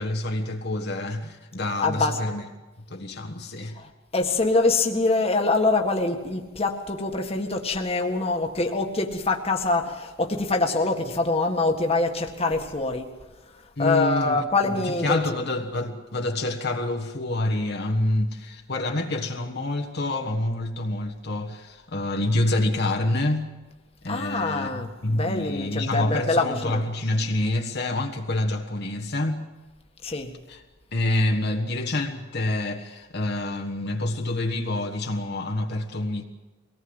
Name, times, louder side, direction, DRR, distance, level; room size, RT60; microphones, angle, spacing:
voice 1, 0.0-2.4 2.9-3.8 13.8-14.7 15.0-23.5 24.0-29.4 30.5-30.6 30.9-36.2, left 2 dB, 55° left, 1.6 m, -27 dB
voice 2, 1.8-2.2 3.7-13.1 13.8-15.4 24.1-26.8 30.0-30.4, left 3 dB, 30° left, 1.8 m, -25 dB
23.5 x 18.5 x 8.0 m
head